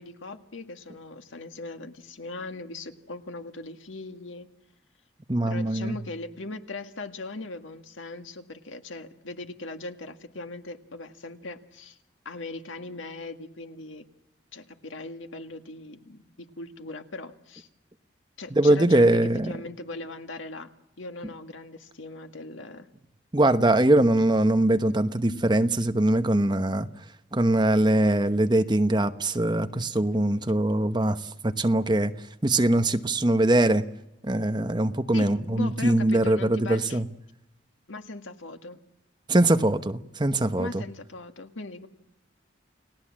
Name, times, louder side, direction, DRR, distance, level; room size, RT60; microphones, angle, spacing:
voice 1, 0.0-4.5 5.5-12.0 12.3-14.0 14.5-17.7 18.4-20.7 21.0-22.9 25.3-25.6 35.1-37.0 37.9-38.8 40.6-41.9, left 2 dB, 85° left, 1.9 m, -39 dB
voice 2, 5.3-6.0 18.5-19.5 23.3-26.9 27.3-32.1 32.4-33.8 34.2-37.0 39.3-40.8, right 1 dB, 25° right, 1.0 m, -22 dB
30.0 x 18.5 x 7.5 m
head